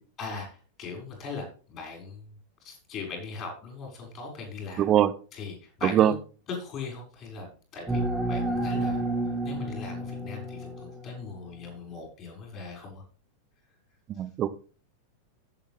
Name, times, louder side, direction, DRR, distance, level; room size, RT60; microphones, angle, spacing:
voice 1, 0.8-2.2 2.6-4.9 5.3-6.1 6.5-9.1 9.4-13.0, left 4 dB, 35° left, 2 dB, 6.2 m, -39 dB
voice 2, 4.8-5.1 5.8-6.1 14.1-14.5, right 11 dB, 30° right, 14 dB, 0.9 m, -22 dB
sound 1, 7.9-11.4, right 1 dB, 5° right, 2.3 m, -30 dB
15.5 x 7.8 x 3.5 m, 0.38 s
figure-of-eight pair, 90°, 0 cm